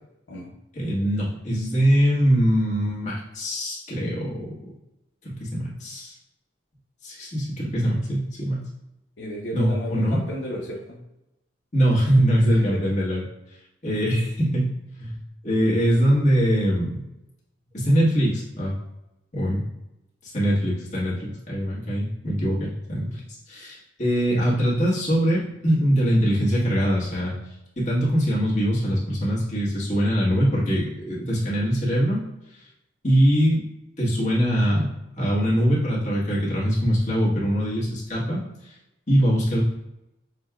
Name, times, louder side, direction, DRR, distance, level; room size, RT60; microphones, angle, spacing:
voice 1, 0.7-4.7 5.2-6.1 7.0-8.6 9.5-10.2 11.7-13.2 13.8-15.1 15.4-17.0 17.7-18.7 19.3-19.6 20.3-23.2 23.5-27.3 27.8-32.2 33.0-33.6 34.0-34.9 35.1-38.4 39.1-39.6, equal, 40° left, -6 dB, 1.3 m, -22 dB
voice 2, 9.2-11.0 12.5-12.9, equal, 70° left, -4 dB, 0.8 m, -33 dB
6.4 x 2.2 x 2.4 m, 0.90 s
head